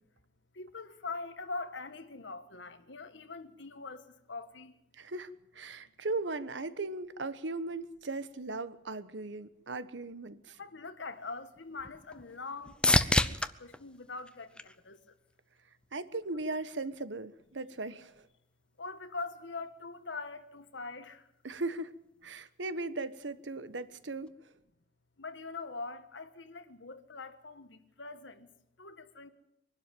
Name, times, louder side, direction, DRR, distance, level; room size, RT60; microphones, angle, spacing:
voice 1, 0.5-4.7 10.6-15.0 18.8-21.2 25.2-28.5 28.8-29.3, left 3 dB, 80° left, 1.6 m, -43 dB
voice 2, 4.9-10.6 15.9-18.3 21.4-21.9 22.2-24.5, right 3 dB, 85° right, 1.2 m, -38 dB
sound 1, 11.1-15.3 15.8-16.4 24.3-24.4, left 1 dB, 5° left, 0.7 m, -32 dB
23.5 x 12.0 x 9.2 m
head